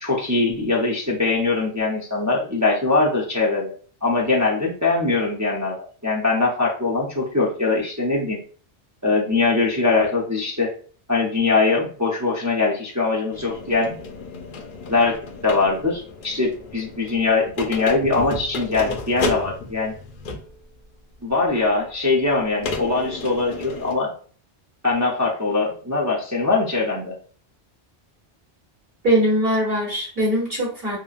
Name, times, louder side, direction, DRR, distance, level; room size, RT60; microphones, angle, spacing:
voice 1, 0.0-3.7 4.0-8.4 9.0-10.7 11.1-13.9 14.9-19.9 21.2-24.1 24.8-27.1, left 3 dB, 25° right, -4 dB, 0.3 m, -22 dB
sound 1, 13.3-20.6 21.5-21.6 22.6-24.0, left 3 dB, 60° left, 0.6 m, -32 dB
voice 2, 29.0-31.0, right 1 dB, 60° right, -5 dB, 1.2 m, -21 dB
2.8 x 2.4 x 2.4 m, 0.41 s
omnidirectional pair, 1.1 m